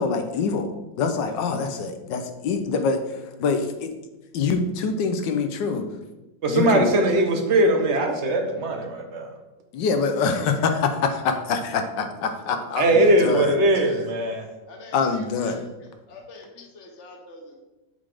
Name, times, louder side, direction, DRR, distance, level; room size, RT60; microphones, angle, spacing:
voice 1, 0.0-3.9 4.3-5.9 6.5-6.9 9.7-10.3 10.6-11.6 12.2-13.5 14.9-15.6 16.6-16.7, left 5 dB, 70° left, 7 dB, 1.3 m, -25 dB
voice 2, 6.4-9.3 12.8-14.5, right 1 dB, 50° right, 3 dB, 0.9 m, -20 dB
voice 3, 14.7-15.6 16.1-17.6, left 2 dB, 45° left, 1 dB, 1.1 m, -45 dB
7.4 x 4.0 x 4.8 m, 1.0 s
omnidirectional pair, 2.1 m